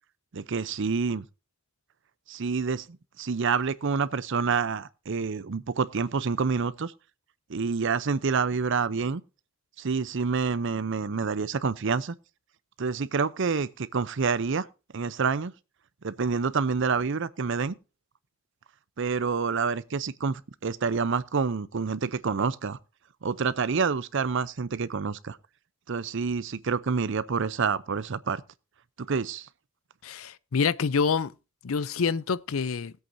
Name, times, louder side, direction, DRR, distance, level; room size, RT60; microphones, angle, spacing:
voice 1, 0.3-1.2 2.3-2.9 3.2-6.9 7.5-9.2 9.8-12.1 12.8-14.7 14.9-15.5 16.0-17.7 19.0-22.8 23.2-25.4 25.9-28.4 29.1-29.5, right 5 dB, 60° right, 0.6 m, -27 dB
voice 2, 30.0-31.3 31.6-32.9, left 5 dB, 80° left, 0.5 m, -27 dB
20.0 x 8.2 x 2.7 m
head